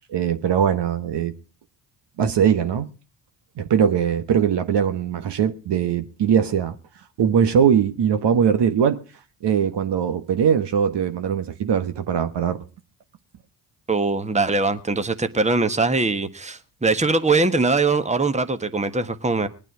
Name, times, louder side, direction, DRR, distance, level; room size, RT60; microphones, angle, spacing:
voice 1, 0.1-1.3 2.2-2.9 3.6-6.8 7.2-9.0 9.4-12.6, right 8 dB, 55° right, 1.3 m, -21 dB
voice 2, 13.9-19.5, right 3 dB, 15° right, 1.4 m, -21 dB
20.5 x 9.0 x 4.9 m
supercardioid pair, 55°, 48 cm